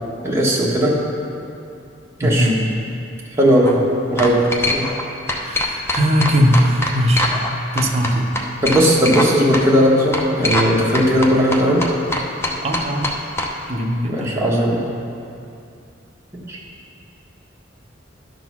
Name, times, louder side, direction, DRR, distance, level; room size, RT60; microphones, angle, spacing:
voice 1, 0.2-0.9 2.2-2.5 3.4-3.8 4.1-4.9 8.6-11.9 14.1-14.9 16.5-16.6, equal, 15° right, -5 dB, 1.3 m, -17 dB
voice 2, 2.2-2.6 5.4-7.5 7.7-8.4 12.6-13.1 13.7-14.5, equal, 35° right, 1 dB, 0.7 m, -19 dB
sound 1, 3.4-3.7 4.2-5.0 5.3-7.5 7.8-9.3 9.5-9.6 10.1-10.7 10.9-13.5, left 1 dB, 15° left, 0.6 m, -22 dB
11.0 x 3.8 x 6.1 m, 2.5 s
head